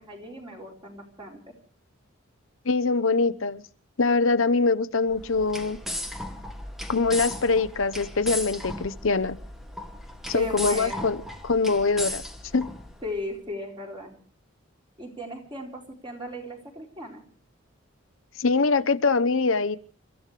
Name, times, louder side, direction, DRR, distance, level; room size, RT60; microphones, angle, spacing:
voice 1, 0.0-1.5 10.3-11.1 13.0-14.2 15.0-17.2, equal, 25° right, 0 dB, 4.1 m, -37 dB
voice 2, 2.6-3.6 4.0-5.8 6.9-9.4 10.3-11.2 11.4-12.2 12.5-12.7 18.4-19.8, left 4 dB, 80° left, 11 dB, 0.9 m, -23 dB
sound 1, 5.1-13.2, left 1 dB, ahead, 1.3 m, -36 dB
29.5 x 14.5 x 3.4 m, 0.40 s
head